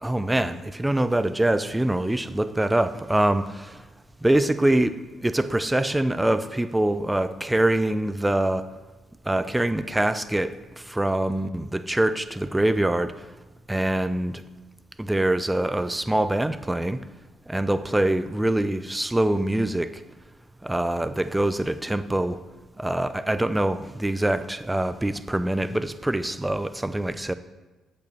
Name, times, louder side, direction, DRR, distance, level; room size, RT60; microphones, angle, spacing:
voice 1, 0.0-3.8 4.2-8.7 9.3-13.3 13.7-14.4 15.0-17.0 17.5-20.0 20.6-22.4 22.8-27.3, right 1 dB, 10° right, 12 dB, 0.5 m, -24 dB
8.5 x 6.6 x 6.6 m, 1.2 s
cardioid pair, 90°, 0 cm